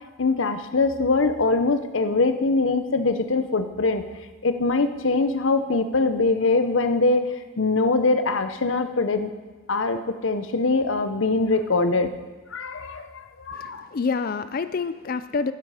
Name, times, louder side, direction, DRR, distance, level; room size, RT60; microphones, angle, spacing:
voice 1, 0.2-4.1 4.4-7.3 7.6-9.3 9.7-12.1 12.5-13.8, left 3 dB, 65° left, 9 dB, 0.7 m, -23 dB
voice 2, 13.5-15.5, left 4 dB, 45° left, 13 dB, 0.4 m, -27 dB
11.5 x 10.0 x 4.9 m, 1.3 s
head